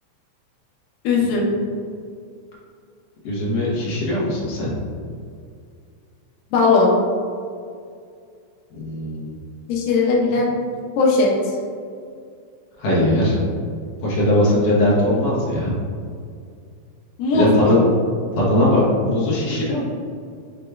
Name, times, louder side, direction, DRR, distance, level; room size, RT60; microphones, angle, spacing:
voice 1, 1.0-1.5 6.5-6.9 9.7-10.6 11.0-11.6 17.2-17.8, left 3 dB, 85° left, -2 dB, 2.3 m, -18 dB
voice 2, 3.2-4.7 8.7-9.3 12.8-13.4 14.0-15.7 17.3-17.8 18.4-19.8, left 1 dB, 65° left, -6 dB, 1.9 m, -19 dB
6.5 x 2.9 x 2.3 m, 2.3 s
omnidirectional pair, 3.7 m